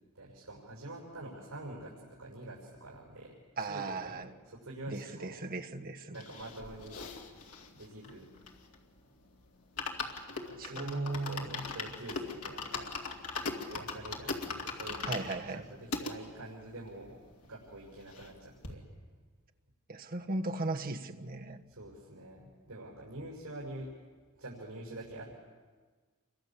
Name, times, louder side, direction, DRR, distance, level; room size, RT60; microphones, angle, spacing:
voice 1, 0.1-5.3 6.1-7.0 7.7-8.3 10.4-12.9 13.7-17.2 17.4-18.8 21.7-23.9 24.3-25.4, right 1 dB, 75° right, 6.3 m, -46 dB
voice 2, 3.6-4.3 4.9-6.2 10.6-11.6 15.1-15.7 19.9-21.6, right 2 dB, 40° right, 1.3 m, -37 dB
sound 1, 6.1-8.9 9.3-9.4 9.6-16.1 16.7-16.8 17.0-17.1 17.4-18.4 18.6-18.8, left 4 dB, 85° left, 2.8 m, -40 dB
29.5 x 24.5 x 7.5 m
head